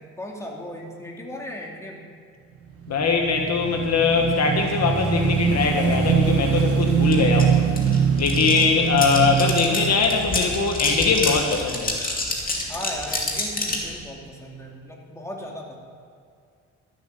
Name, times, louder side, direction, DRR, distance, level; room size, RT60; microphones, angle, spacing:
voice 1, 0.0-2.0 8.5-8.8 12.7-15.8, left 1 dB, 10° left, -1 dB, 2.6 m, -36 dB
Motorcycle / Engine, 2.8-11.3, right 7 dB, 50° right, 1.3 m, -23 dB
voice 2, 2.9-7.6 8.2-12.0, left 5 dB, 60° left, 3 dB, 1.5 m, -21 dB
sound 1, 7.1-7.2 7.4-13.9, left 2 dB, 30° left, 2.6 m, -28 dB
13.0 x 8.1 x 6.6 m, 2.3 s
cardioid pair, 90°, 30 cm